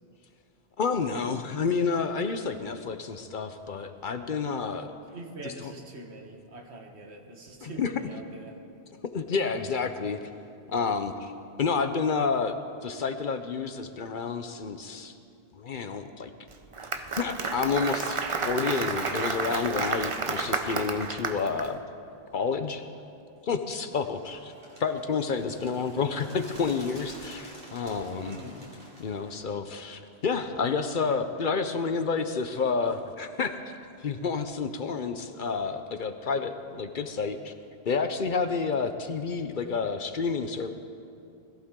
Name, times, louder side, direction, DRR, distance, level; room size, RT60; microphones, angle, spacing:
voice 1, 0.8-4.9 5.4-5.5 7.6-7.9 9.1-10.2 10.7-11.3 11.6-12.5 12.8-15.1 15.5-16.3 17.0-21.8 22.3-22.8 23.4-24.5 24.8-28.4 29.0-33.6 34.0-37.5 37.8-40.7, left 5 dB, 55° left, 8 dB, 0.8 m, -29 dB
voice 2, 5.1-8.6 28.2-28.6, right 2 dB, 80° right, 2 dB, 1.6 m, -43 dB
Applause, 16.5-21.7, right 4 dB, 35° right, 0.6 m, -31 dB
Bird, 24.1-29.4, right 1 dB, 55° right, 2.6 m, -49 dB
20.5 x 14.5 x 3.7 m, 2.5 s
omnidirectional pair, 1.1 m